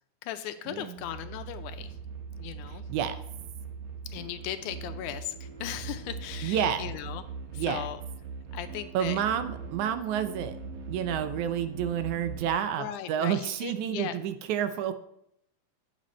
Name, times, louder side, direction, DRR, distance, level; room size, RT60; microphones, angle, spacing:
voice 1, 0.2-2.0 2.4-2.9 4.1-7.2 7.5-8.0 8.5-9.2 12.8-14.2, left 11 dB, 80° left, 10 dB, 2.0 m, -37 dB
sound 1, 1.0-12.5, right 5 dB, 55° right, 1.5 m, -41 dB
voice 2, 6.4-6.9 7.5-7.8 8.9-10.6 10.9-14.9, right 9 dB, 80° right, 9 dB, 1.9 m, -29 dB
9.5 x 7.5 x 4.2 m, 0.75 s
omnidirectional pair, 3.7 m